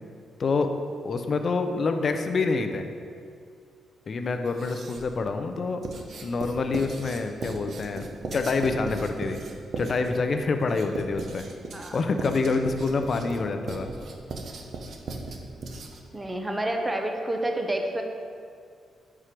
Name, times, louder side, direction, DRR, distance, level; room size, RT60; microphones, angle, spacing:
voice 1, 0.4-0.7 1.0-2.8 4.1-5.8 6.2-9.4 9.8-11.4 11.9-13.9, left 4 dB, 45° left, 6 dB, 0.4 m, -27 dB
Writing, 4.5-5.2 5.8-16.2, right 3 dB, 55° right, 0.6 m, -37 dB
voice 2, 16.1-18.0, right 1 dB, 15° right, 3 dB, 0.6 m, -29 dB
4.7 x 4.4 x 5.1 m, 2.2 s
cardioid pair, 110°, 0 cm